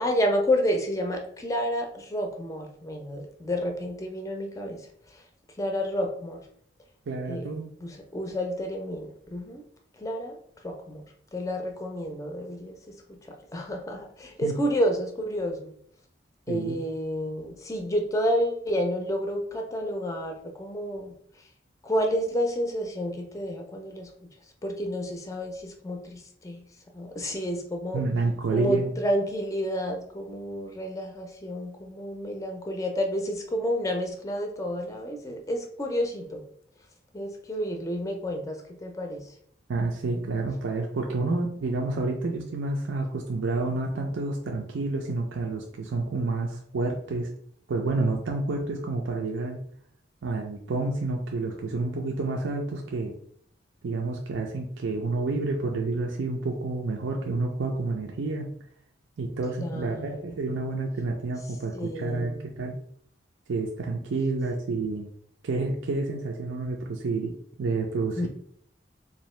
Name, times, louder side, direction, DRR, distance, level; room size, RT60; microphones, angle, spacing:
voice 1, 0.0-4.8 5.6-6.4 7.3-7.5 7.8-9.7 10.0-10.4 10.6-11.1 11.3-15.7 16.5-21.1 21.8-24.3 24.6-26.6 26.9-28.0 28.5-36.4 37.1-39.3 59.6-60.3 61.7-62.6 68.2-68.3, equal, 15° left, 3 dB, 0.5 m, -30 dB
voice 2, 7.1-7.7 14.4-14.5 16.5-16.8 27.9-28.9 39.7-47.3 47.7-49.6 50.2-53.1 53.8-58.5 59.2-62.8 63.5-65.1 65.4-68.3, right 3 dB, 80° right, 1 dB, 0.5 m, -29 dB
3.7 x 2.7 x 3.1 m, 0.64 s
head